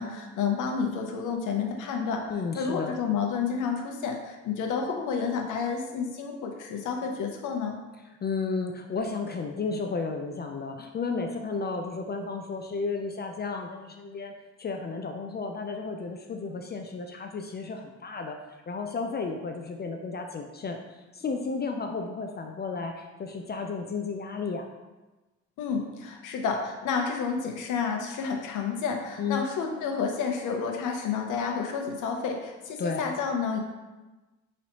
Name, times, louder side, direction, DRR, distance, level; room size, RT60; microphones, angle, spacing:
voice 1, 0.0-2.3 2.5-7.8 25.6-33.6, left 5 dB, 85° left, 3 dB, 0.7 m, -30 dB
voice 2, 2.3-3.0 8.2-14.3 14.6-18.4 18.7-24.7 29.2-29.5 32.8-33.0, left 4 dB, 35° left, 4 dB, 0.4 m, -33 dB
5.3 x 3.1 x 2.9 m, 1.1 s
cardioid pair, 90°, 30 cm